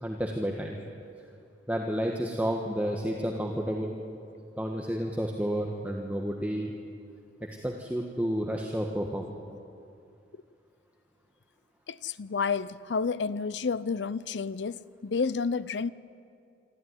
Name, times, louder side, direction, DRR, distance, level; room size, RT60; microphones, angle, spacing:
voice 1, 0.0-0.8 1.7-4.0 4.6-6.7 7.6-9.3, equal, 10° right, 0 dB, 1.4 m, -30 dB
voice 2, 11.9-15.9, left 5 dB, 75° left, 17 dB, 0.6 m, -30 dB
26.0 x 13.5 x 9.7 m, 2.5 s
head